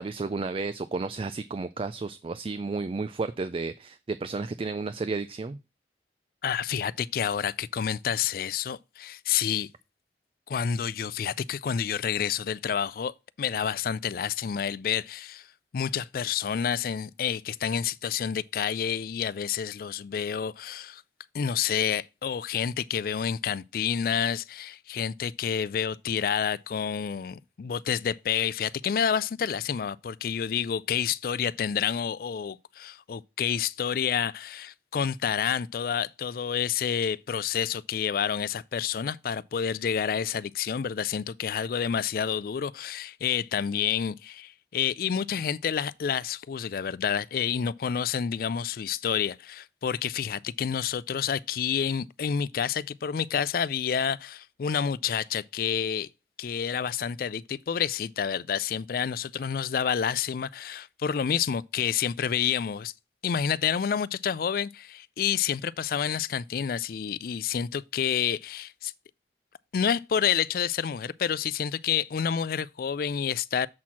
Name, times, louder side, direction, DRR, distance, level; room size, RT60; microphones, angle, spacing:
voice 1, 0.0-5.6, right 3 dB, 30° right, 0.3 m, -32 dB
voice 2, 6.4-9.7 10.5-13.1 13.4-15.5 15.7-21.0 21.3-56.1 56.4-62.9 63.2-68.9 69.7-73.7, left 8 dB, 55° left, 0.3 m, -29 dB
7.4 x 4.3 x 5.8 m
head